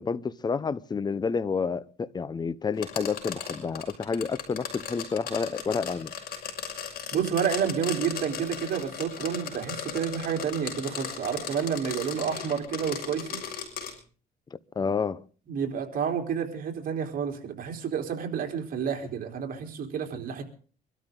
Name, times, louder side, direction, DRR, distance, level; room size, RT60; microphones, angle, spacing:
voice 1, 0.0-6.1 14.8-15.2, left 5 dB, 25° left, 0.9 m, -29 dB
sound 1, 2.8-13.9, left 8 dB, 60° left, 6.2 m, -37 dB
voice 2, 7.1-13.4 15.5-20.4, right 7 dB, 55° right, 3.9 m, -30 dB
25.0 x 13.0 x 3.9 m
cardioid pair, 110°, 17 cm